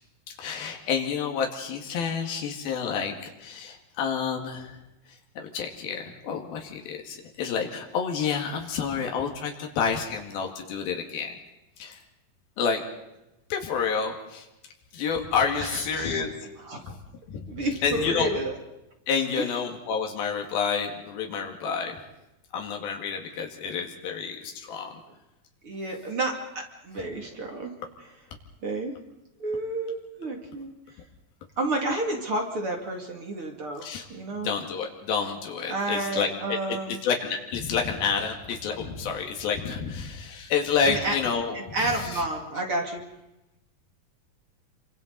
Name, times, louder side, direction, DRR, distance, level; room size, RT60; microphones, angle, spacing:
voice 1, 0.3-4.7 5.4-11.3 11.8-12.0 12.6-12.8 13.5-14.5 14.9-16.3 17.3-17.4 17.8-18.3 19.1-22.0 22.5-25.0 33.8-34.0 34.4-42.2, left 6 dB, 85° left, 2 dB, 4.0 m, -29 dB
voice 2, 15.5-16.2 16.6-16.8 17.5-18.5 19.3-19.4 25.6-27.7 28.6-28.9 29.4-30.7 31.6-34.5 35.7-37.0 40.8-41.1 41.5-43.0, right 2 dB, 40° right, 2 dB, 3.0 m, -30 dB
28.5 x 25.0 x 4.1 m, 0.92 s
omnidirectional pair, 4.2 m